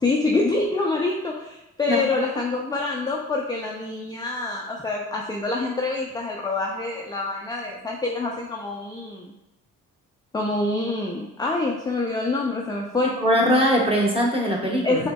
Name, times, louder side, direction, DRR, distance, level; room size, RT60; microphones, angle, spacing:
voice 1, 0.0-9.3 10.3-13.1 14.8-15.1, left 3 dB, 10° left, -1 dB, 0.4 m, -26 dB
voice 2, 13.2-15.1, equal, 15° right, -2 dB, 1.1 m, -21 dB
5.1 x 2.1 x 2.2 m, 0.91 s
hypercardioid pair, 50°, 37 cm